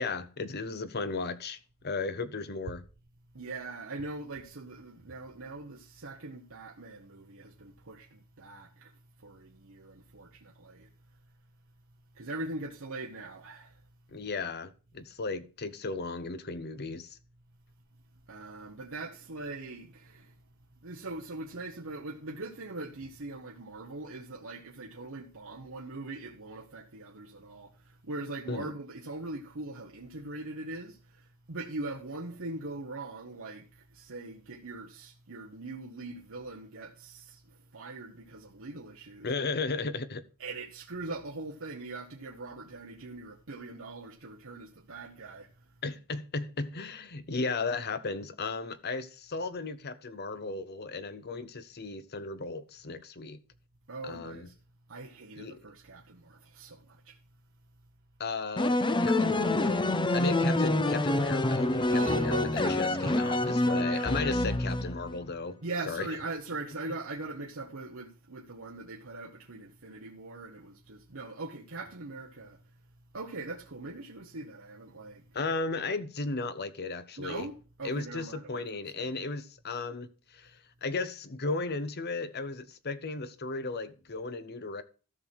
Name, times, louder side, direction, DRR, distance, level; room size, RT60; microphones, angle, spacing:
voice 1, 0.0-1.6 1.8-2.8 14.1-17.2 28.5-28.7 39.2-40.2 45.8-53.4 54.0-54.5 55.4-55.6 58.2-65.6 65.9-66.1 75.3-77.5 77.8-80.1 80.3-84.8, left 3 dB, 45° left, 0.9 m, -35 dB
voice 2, 3.3-10.9 12.1-13.8 17.9-20.4 20.8-39.3 40.4-45.7 53.9-54.6 54.9-57.2 60.3-60.4 61.9-64.3 65.6-72.8 73.1-75.3 77.2-79.1, right 2 dB, 65° right, 1.2 m, -41 dB
sound 1, 58.6-65.2, left 2 dB, 20° left, 0.7 m, -27 dB
14.0 x 5.9 x 4.6 m
head